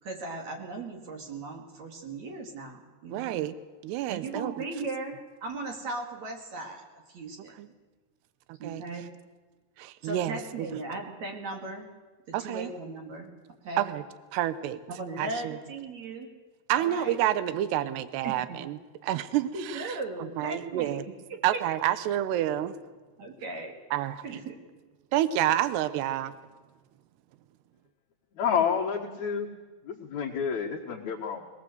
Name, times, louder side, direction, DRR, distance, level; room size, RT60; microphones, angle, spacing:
voice 1, 0.0-3.4 4.1-7.5 8.6-9.0 10.0-11.9 12.3-13.3 13.6-13.9 14.9-16.3 16.7-17.2 18.2-18.6 19.5-21.0 21.3-21.6 23.2-23.7 24.2-24.6, right 2 dB, 45° right, 2 dB, 3.2 m, -37 dB
voice 2, 3.1-3.5 3.8-4.5 7.6-7.7 8.6-8.8 9.8-10.7 12.3-12.7 13.8-14.0 14.3-14.8 15.2-15.6 16.7-18.8 19.0-21.0 21.4-22.7 23.9-24.2 25.1-26.3, right 12 dB, 80° right, 14 dB, 2.9 m, -29 dB
voice 3, 28.3-29.5 29.8-31.5, left 7 dB, 55° left, -3 dB, 2.4 m, -29 dB
22.0 x 20.0 x 7.9 m, 1.3 s
omnidirectional pair, 4.9 m